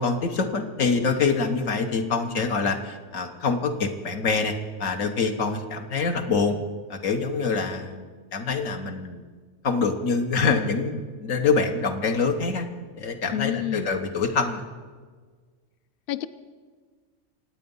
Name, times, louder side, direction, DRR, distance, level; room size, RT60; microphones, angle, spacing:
voice 1, 0.0-4.5 4.8-6.6 6.9-9.2 9.6-12.7 13.0-14.6, left 4 dB, 80° left, 5 dB, 1.6 m, -25 dB
voice 2, 13.3-13.9 16.1-16.3, left 11 dB, 60° left, 13 dB, 0.7 m, -28 dB
26.5 x 8.9 x 5.5 m, 1.5 s
omnidirectional pair, 1.3 m